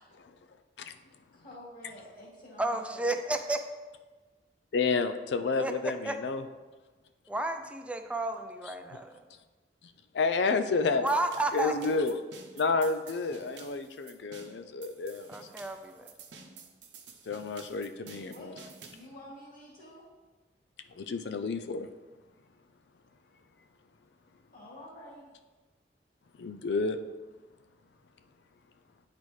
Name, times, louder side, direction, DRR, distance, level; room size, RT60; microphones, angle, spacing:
voice 1, 1.3-3.1 18.2-18.6 18.9-20.1 24.5-25.3, left 1 dB, 55° left, -6 dB, 2.3 m, -49 dB
voice 2, 2.6-3.6 5.6-6.2 7.3-9.2 11.0-11.9 15.3-16.1, right 2 dB, 5° right, 6 dB, 0.4 m, -32 dB
voice 3, 4.7-6.4 8.9-9.0 10.1-11.1 11.5-12.2 12.5-15.3 17.3-18.5 21.0-21.9 26.4-27.0, left 4 dB, 70° left, 8 dB, 0.4 m, -30 dB
sound 1, 11.1-19.1, right 5 dB, 80° right, 0.7 m, -51 dB
10.5 x 4.1 x 3.2 m, 1.3 s
head